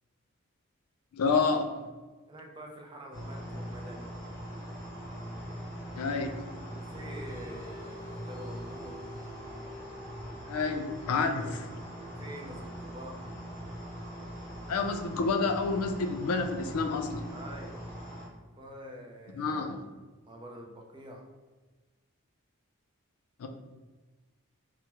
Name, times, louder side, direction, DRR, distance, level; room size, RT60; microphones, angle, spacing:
voice 1, 1.1-1.9 5.9-6.3 10.5-11.7 14.7-17.3 19.4-19.8 23.4-23.5, left 4 dB, 85° left, 5 dB, 0.4 m, -29 dB
voice 2, 2.3-4.1 6.7-9.0 12.2-13.2 17.3-17.8 18.6-19.8 20.2-21.2, right 1 dB, 20° right, 0 dB, 0.4 m, -46 dB
sound 1, 3.1-18.3, equal, 20° left, 0.9 m, -42 dB
sound 2, 6.6-17.5, left 2 dB, 45° left, 0.7 m, -52 dB
3.3 x 2.0 x 2.9 m, 1.3 s
head